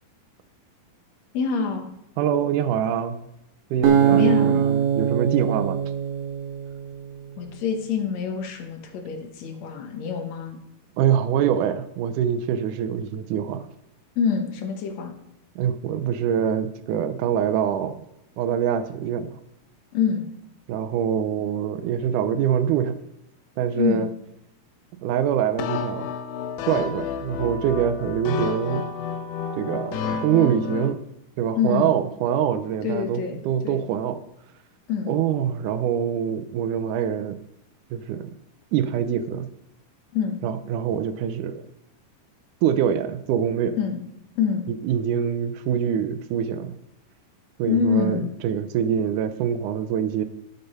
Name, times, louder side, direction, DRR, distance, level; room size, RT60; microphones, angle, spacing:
voice 1, 1.3-1.9 4.1-4.6 7.4-10.6 14.2-15.1 19.9-20.2 23.8-24.1 31.6-31.9 32.8-33.4 33.6-33.8 34.9-35.1 40.1-40.4 43.8-44.0 44.4-44.7 47.7-48.3, left 7 dB, 65° left, 5 dB, 1.9 m, -25 dB
voice 2, 2.2-3.3 3.7-5.8 11.0-13.7 15.6-18.0 18.4-19.4 20.7-23.0 23.6-24.1 25.0-26.1 26.7-28.8 29.5-31.0 31.4-34.2 35.1-37.4 37.9-38.3 38.7-39.5 40.4-41.7 42.6-43.8 44.8-46.7 47.6-50.2, right 9 dB, 80° right, 11 dB, 1.8 m, -24 dB
Acoustic guitar, 3.8-7.1, right 8 dB, 60° right, 2.4 m, -21 dB
sound 1, 25.6-30.9, left 6 dB, 85° left, 2.6 m, -30 dB
11.5 x 6.9 x 5.4 m, 0.83 s
omnidirectional pair, 4.3 m